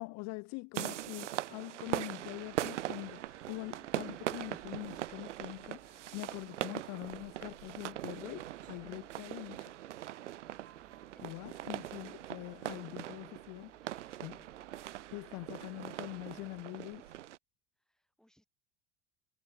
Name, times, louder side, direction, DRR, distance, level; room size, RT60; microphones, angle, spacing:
voice 1, 0.0-9.7 11.2-13.7 14.2-14.4 15.1-17.2, left 27 dB, 50° left, 0.5 m, -44 dB
sound 1, 0.7-17.4, right 13 dB, 90° right, 0.6 m, -41 dB
sound 2, 2.2-16.6, right 11 dB, 40° right, 2.6 m, -61 dB
voice 2, 11.1-11.6 12.8-13.2 13.8-15.0 15.3-15.7 17.8-18.4, equal, ahead, 4.7 m, -70 dB
hypercardioid pair, 75°, 35 cm